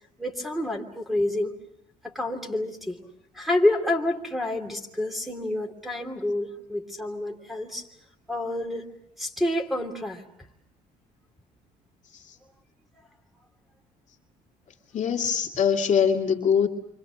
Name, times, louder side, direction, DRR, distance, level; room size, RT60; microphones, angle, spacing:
voice 1, 0.2-1.5 2.0-3.0 3.3-7.9 8.3-8.9 9.2-10.2, left 1 dB, ahead, 5 dB, 2.9 m, -28 dB
voice 2, 14.9-16.7, left 7 dB, 45° left, 1 dB, 2.3 m, -23 dB
29.0 x 25.0 x 6.4 m, 0.76 s
cardioid pair, 110°, 17 cm